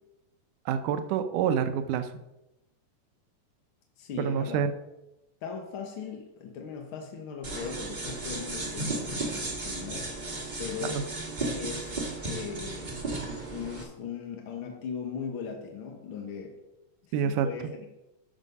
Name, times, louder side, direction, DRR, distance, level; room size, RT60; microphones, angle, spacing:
voice 1, 0.7-2.1 4.2-4.7 10.8-11.0 17.1-17.5, right 8 dB, 75° right, 9 dB, 2.2 m, -27 dB
voice 2, 4.0-4.6 5.4-11.0 11.4-12.0 12.2-13.0 13.5-16.6 17.1-17.9, left 6 dB, 60° left, 1 dB, 1.4 m, -39 dB
sound 1, 7.4-13.8, right 2 dB, 20° right, 1.1 m, -34 dB
13.0 x 6.2 x 5.4 m, 0.95 s
omnidirectional pair, 3.8 m